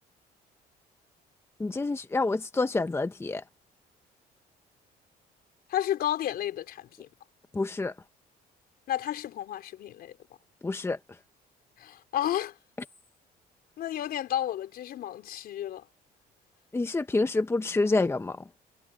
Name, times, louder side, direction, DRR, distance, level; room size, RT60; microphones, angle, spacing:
voice 1, 1.6-3.4 7.5-7.9 10.6-11.0 16.7-18.4, left 3 dB, 15° left, 1.2 m, -27 dB
voice 2, 5.7-7.1 8.9-10.2 11.8-12.5 13.8-15.8, left 12 dB, 65° left, 4.6 m, -32 dB
cardioid pair, 110°, 17 cm